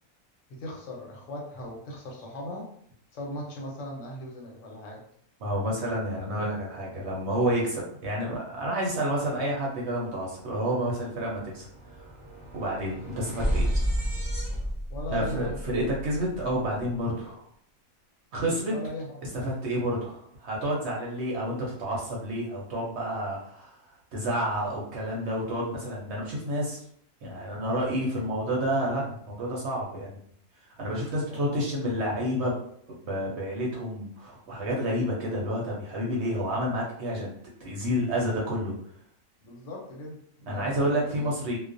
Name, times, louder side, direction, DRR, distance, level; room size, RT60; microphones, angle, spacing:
voice 1, 0.5-2.7 3.1-5.0 14.9-15.6 18.7-19.3 31.3-31.6 39.4-41.3, left 1 dB, 65° left, -1 dB, 1.0 m, -38 dB
voice 2, 5.4-11.7 12.5-13.7 15.1-17.5 18.3-18.7 19.4-23.8 24.1-26.8 27.2-30.1 30.7-32.5 33.0-37.3 37.6-38.7 40.5-41.6, equal, 60° right, -3 dB, 0.8 m, -29 dB
sound 1, 10.3-10.4 10.7-16.9, equal, 45° right, 0.3 m, -32 dB
2.3 x 2.1 x 2.5 m, 0.65 s
omnidirectional pair, 1.4 m